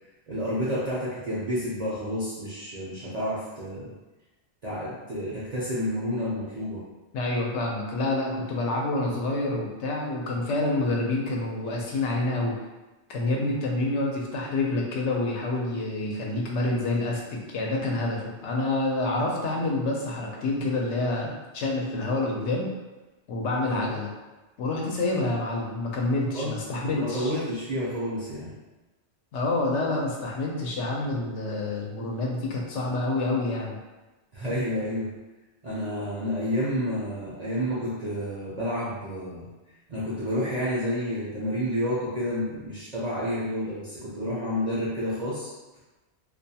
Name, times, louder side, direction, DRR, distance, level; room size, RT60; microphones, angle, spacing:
voice 1, 0.3-3.9 4.6-6.8 23.6-23.9 26.3-26.5 26.9-28.5 34.3-35.1 35.6-39.5 39.9-45.5, equal, 50° right, -9 dB, 0.6 m, -30 dB
voice 2, 7.1-12.6 13.1-22.7 23.3-24.1 24.6-27.3 29.3-33.8, left 2 dB, 80° left, -2 dB, 0.9 m, -28 dB
2.4 x 2.2 x 2.7 m, 1.1 s
omnidirectional pair, 1.2 m